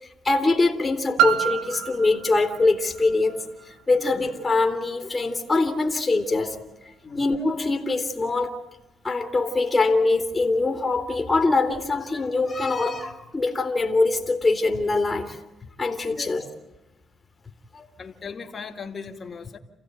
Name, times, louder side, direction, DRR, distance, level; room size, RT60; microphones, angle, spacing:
voice 1, 0.2-6.6 7.1-8.5 9.0-15.4 15.8-16.5 17.7-17.9, left 3 dB, 20° left, 4 dB, 2.7 m, -23 dB
Piano, 1.2-6.6 7.3-7.4, right 9 dB, 90° right, 0.9 m, -30 dB
voice 2, 18.0-19.6, left 5 dB, 40° left, 4 dB, 2.4 m, -38 dB
28.5 x 15.5 x 9.4 m, 1.0 s
cardioid pair, 90°, 0 cm